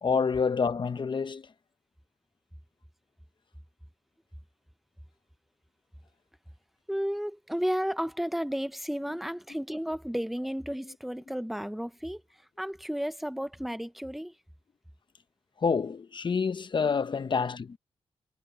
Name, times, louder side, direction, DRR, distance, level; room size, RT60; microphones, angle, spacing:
voice 1, 0.0-1.5 15.6-17.8, left 5 dB, 45° left, 0.9 m, -28 dB
voice 2, 6.9-12.2 12.6-14.3, equal, ahead, 0.8 m, -33 dB
cardioid pair, 95°, 11 cm